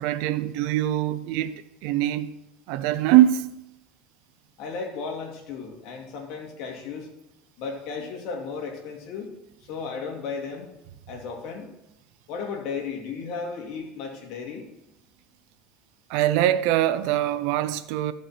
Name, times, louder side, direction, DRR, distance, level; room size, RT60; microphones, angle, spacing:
voice 1, 0.0-2.3 2.7-3.5 16.1-18.1, right 13 dB, 70° right, 0.6 m, -23 dB
voice 2, 4.6-7.1 7.6-9.3 9.7-10.7 11.1-11.7 12.3-14.7, left 5 dB, 65° left, 2.4 m, -34 dB
14.0 x 5.3 x 4.3 m
supercardioid pair, 125°, 0 cm